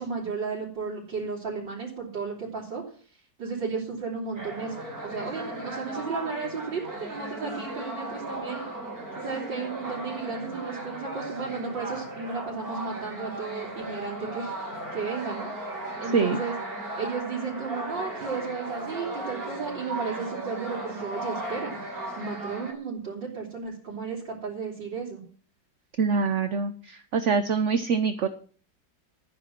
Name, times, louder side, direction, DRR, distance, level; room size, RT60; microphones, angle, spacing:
voice 1, 0.0-2.8 3.4-4.8 5.0-8.6 9.2-15.5 16.0-16.5 16.9-21.8 22.2-25.2, right 5 dB, 85° right, -6 dB, 4.3 m, -34 dB
sound 1, 4.3-22.7, right 1 dB, 30° right, 4.0 m, -36 dB
voice 2, 26.0-28.3, right 5 dB, 50° right, 10 dB, 1.0 m, -25 dB
13.0 x 10.0 x 6.1 m, 0.42 s
omnidirectional pair, 1.9 m